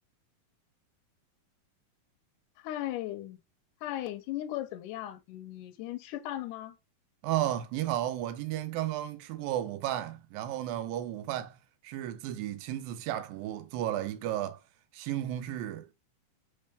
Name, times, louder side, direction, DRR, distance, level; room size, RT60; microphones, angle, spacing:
voice 1, 2.6-3.4 3.8-6.8, left 13 dB, 75° left, 2.1 m, -37 dB
voice 2, 7.2-11.6 11.8-14.6 14.9-15.9, right 12 dB, 90° right, 2.3 m, -33 dB
4.9 x 3.3 x 3.3 m
omnidirectional pair, 4.0 m